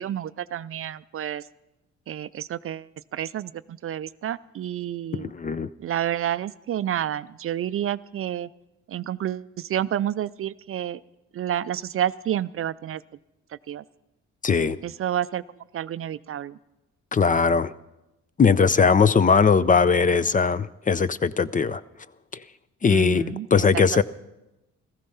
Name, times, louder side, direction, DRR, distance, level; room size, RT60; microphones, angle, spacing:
voice 1, 0.0-1.5 2.1-5.3 5.8-8.5 8.9-11.0 11.3-13.0 13.7-13.8 14.8-15.4 15.7-16.6 22.9-23.7 23.9-24.0, right 11 dB, 45° right, 16 dB, 0.4 m, -29 dB
voice 2, 5.1-5.7 14.4-14.8 17.1-17.7 18.4-21.8 22.3-22.4 22.8-24.0, left 5 dB, 25° left, 17 dB, 0.5 m, -20 dB
15.5 x 14.5 x 5.5 m, 0.95 s
cardioid pair, 90°, 30 cm